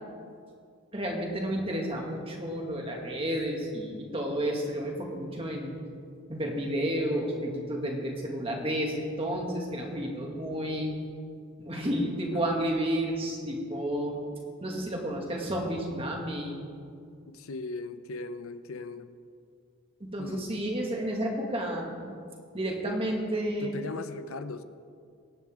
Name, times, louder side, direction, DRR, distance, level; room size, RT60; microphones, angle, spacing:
voice 1, 0.9-5.8 6.3-11.0 11.6-14.2 14.6-16.6 20.0-22.1 22.5-23.8, equal, 25° right, 0 dB, 2.1 m, -31 dB
voice 2, 17.3-19.1 20.2-20.6 23.6-24.6, left 3 dB, 80° left, 11 dB, 0.6 m, -38 dB
23.5 x 10.0 x 3.8 m, 2.3 s
head